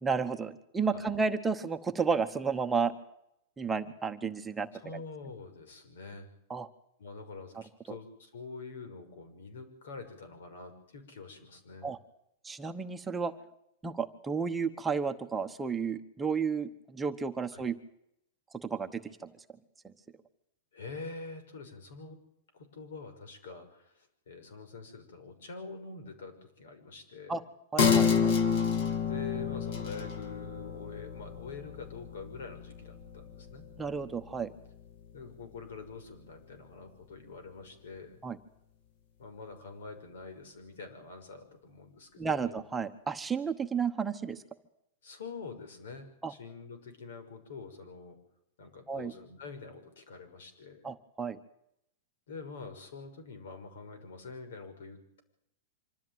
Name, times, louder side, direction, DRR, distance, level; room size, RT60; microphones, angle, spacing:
voice 1, 0.0-2.9 3.6-4.7 6.5-6.7 11.8-12.0 12.4-13.3 13.8-17.8 18.6-19.3 27.3-27.4 27.7-28.3 33.8-34.5 38.2-38.4 42.2-44.4 46.2-46.3 48.9-49.1 50.8-51.4, right 5 dB, 10° right, 6 dB, 1.0 m, -32 dB
voice 2, 4.7-6.3 7.0-11.9 17.5-17.6 20.7-22.2 22.5-27.5 29.0-33.6 35.1-38.2 39.2-42.6 45.0-48.2 48.6-50.9 52.3-55.2, left 4 dB, 85° left, 8 dB, 6.1 m, -46 dB
sound 1, 27.8-34.8 35.2-35.3, left 6 dB, 50° left, 2.9 m, -30 dB
25.5 x 14.0 x 9.3 m, 0.77 s
supercardioid pair, 165°, 0 cm